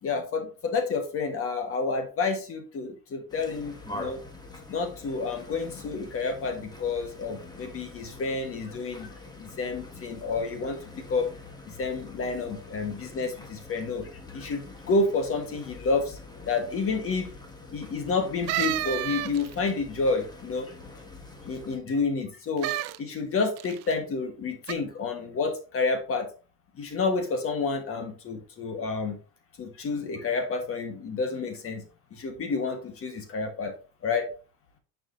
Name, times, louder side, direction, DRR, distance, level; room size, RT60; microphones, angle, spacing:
voice 1, 0.0-4.2 4.7-11.3 11.7-16.2 16.5-17.3 17.7-20.7 21.5-22.7 23.0-26.3 26.8-29.2 29.6-31.8 32.1-33.7 34.0-34.3, left 4 dB, 35° left, 5 dB, 1.4 m, -29 dB
sound 1, 3.3-21.8, left 2 dB, 10° left, 1.2 m, -45 dB
sound 2, 18.5-19.7 22.6-23.0 23.6-23.9 24.6-24.7, right 15 dB, 40° right, 0.4 m, -30 dB
9.5 x 5.0 x 2.6 m, 0.33 s
cardioid pair, 145°, 41 cm